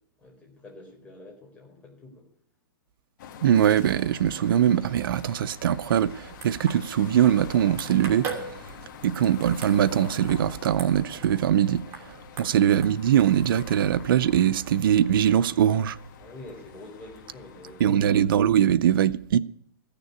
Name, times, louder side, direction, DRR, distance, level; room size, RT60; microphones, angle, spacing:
voice 1, 0.2-2.3 12.2-12.6 16.2-18.1, left 2 dB, 10° left, 4.3 m, -47 dB
sound 1, 3.2-18.3, left 6 dB, 60° left, 1.5 m, -45 dB
voice 2, 3.4-8.3 9.0-11.8 12.4-16.0 17.8-19.4, right 10 dB, 75° right, 0.5 m, -22 dB
sound 2, 5.3-17.8, right 5 dB, 25° right, 2.8 m, -44 dB
14.5 x 6.8 x 9.6 m
hypercardioid pair, 150°, 12 cm